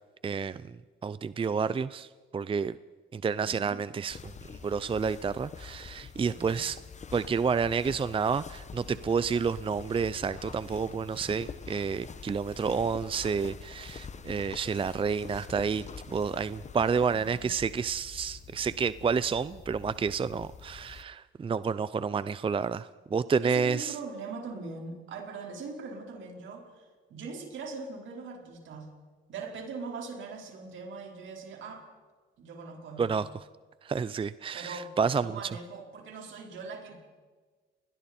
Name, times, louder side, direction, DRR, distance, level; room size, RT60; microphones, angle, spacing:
voice 1, 0.2-0.8 1.0-2.8 3.1-4.3 4.6-6.8 7.1-23.9 33.0-33.4 33.8-35.4, right 5 dB, 25° right, 16 dB, 0.5 m, -30 dB
voice 2, 3.4-3.8 6.2-6.6 17.1-17.5 23.4-28.9 29.3-31.8 32.4-33.3 34.5-34.9 35.2-37.0, right 4 dB, 75° right, 1 dB, 4.5 m, -41 dB
sound 1, 4.1-21.0, left 6 dB, 35° left, 1.0 m, -46 dB
30.0 x 21.0 x 4.4 m, 1.4 s
cardioid pair, 90°, 20 cm